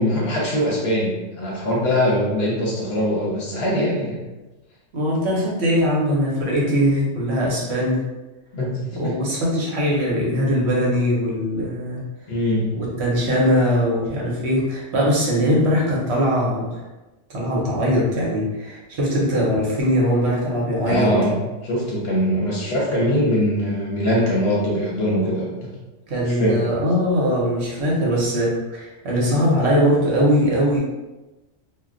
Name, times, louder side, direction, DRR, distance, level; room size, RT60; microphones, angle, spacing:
voice 1, 0.0-4.2 8.5-9.2 12.3-12.7 20.9-21.4 21.6-25.5 26.3-26.8, equal, 60° left, -3 dB, 0.8 m, -22 dB
voice 2, 4.9-8.0 8.9-12.0 12.8-16.7 17.3-21.1 26.1-30.8, equal, 65° right, -4 dB, 1.0 m, -21 dB
2.3 x 2.2 x 3.7 m, 1.1 s
omnidirectional pair, 1.3 m